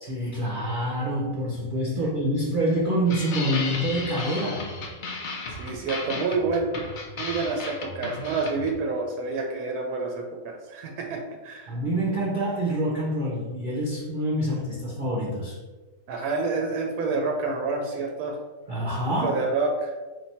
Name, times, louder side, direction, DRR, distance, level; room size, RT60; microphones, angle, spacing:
voice 1, 0.0-4.7 11.7-15.6 18.7-19.4, right 1 dB, 50° right, -5 dB, 0.7 m, -26 dB
sound 1, 3.1-8.8, left 3 dB, 85° left, 0.4 m, -35 dB
voice 2, 5.6-6.8 7.2-11.8 16.1-18.4 19.2-19.9, right 3 dB, 85° right, 1 dB, 1.1 m, -28 dB
3.3 x 2.6 x 4.1 m, 1.3 s
omnidirectional pair, 1.6 m